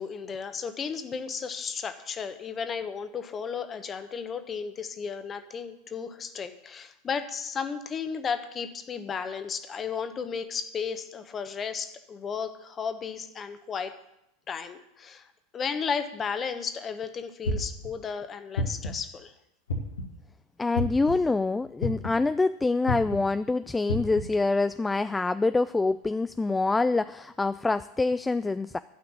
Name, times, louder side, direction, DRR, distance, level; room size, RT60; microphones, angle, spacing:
voice 1, 0.0-13.9 14.5-19.3, left 6 dB, 25° left, 10 dB, 1.2 m, -34 dB
sound 1, 17.5-17.9 18.6-19.0 19.7-20.1 20.8-21.1 21.8-22.2 22.9-23.2 23.9-24.2, left 2 dB, 75° left, 1.7 m, -29 dB
voice 2, 20.6-28.8, left 3 dB, 10° left, 13 dB, 0.3 m, -26 dB
12.0 x 5.8 x 8.9 m, 0.85 s
figure-of-eight pair, 85°, 0 cm